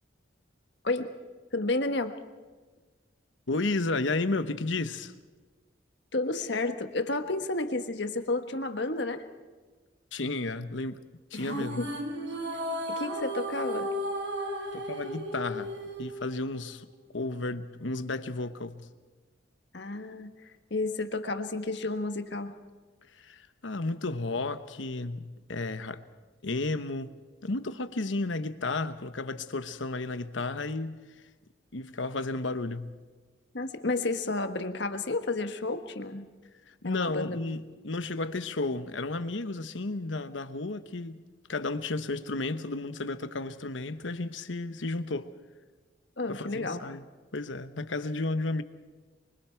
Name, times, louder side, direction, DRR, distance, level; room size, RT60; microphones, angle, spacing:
voice 1, 0.8-1.1 1.5-2.2 6.1-9.3 11.3-11.9 13.0-13.9 19.7-22.6 33.5-36.2 36.8-37.4 46.2-46.8, left 2 dB, 65° left, 1.5 m, -31 dB
voice 2, 3.5-5.1 10.1-11.0 11.3-11.9 14.7-15.7 16.0-18.9 23.2-26.0 26.4-27.1 27.4-31.0 31.7-33.0 36.7-41.2 41.5-45.3 46.3-47.1 47.3-48.6, left 2 dB, 80° left, 1.1 m, -33 dB
sound 1, 11.3-16.8, equal, 75° right, 3.6 m, -35 dB
25.0 x 24.5 x 4.6 m
head